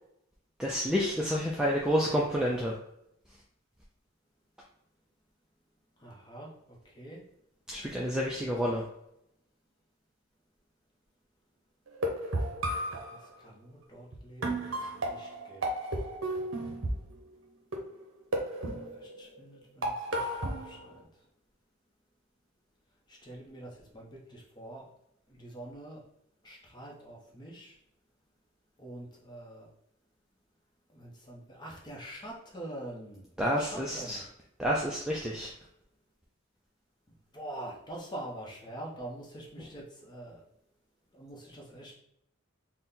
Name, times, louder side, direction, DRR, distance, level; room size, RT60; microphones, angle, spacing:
voice 1, 0.6-2.8 7.7-8.8 33.4-34.2 34.6-35.5, equal, 5° right, -4 dB, 0.3 m, -29 dB
voice 2, 6.0-7.2 13.1-15.7 18.6-21.1 23.1-24.9 25.3-26.0 26.4-27.8 28.8-29.7 30.9-34.2 37.3-40.4 41.1-41.9, right 1 dB, 20° left, -3 dB, 0.8 m, -45 dB
sound 1, 11.9-13.2 14.1-14.2 14.4-17.2 17.7-18.0 18.3-19.3 19.8-20.9, right 1 dB, 60° right, 0.8 m, -33 dB
4.1 x 2.2 x 3.7 m, 0.77 s
head